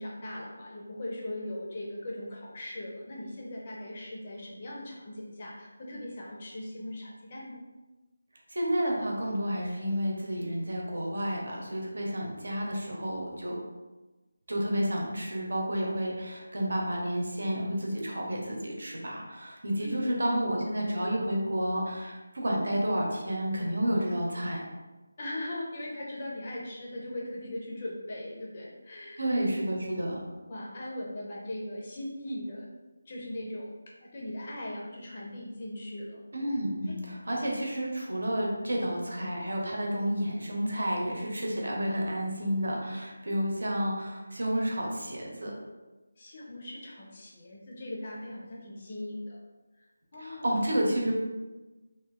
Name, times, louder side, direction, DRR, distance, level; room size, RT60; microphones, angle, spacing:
voice 1, 0.0-7.6 19.8-20.7 25.2-29.3 30.5-32.7 33.1-33.7 34.0-36.2 36.9-37.0 46.2-49.4 49.8-49.9 50.1-50.6, left 1 dB, 20° left, -3 dB, 0.5 m, -39 dB
voice 2, 8.5-13.5 14.5-24.6 29.2-30.2 36.3-45.5 50.2-51.3, equal, 65° right, -1 dB, 0.9 m, -30 dB
2.9 x 2.5 x 3.6 m, 1.2 s
figure-of-eight pair, 180°, 0 cm